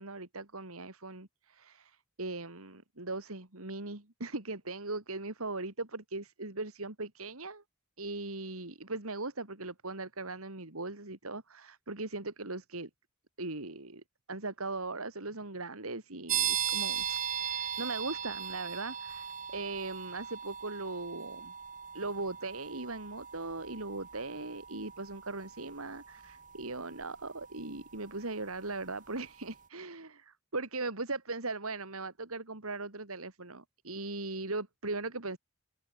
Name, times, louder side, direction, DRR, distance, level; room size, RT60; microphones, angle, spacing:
voice 1, 0.0-7.6 8.0-12.9 13.4-14.0 14.3-21.5 21.9-35.4, right 3 dB, 80° right, 3.1 m, -39 dB
sound 1, 16.3-28.8, right 9 dB, 35° right, 2.5 m, -38 dB
head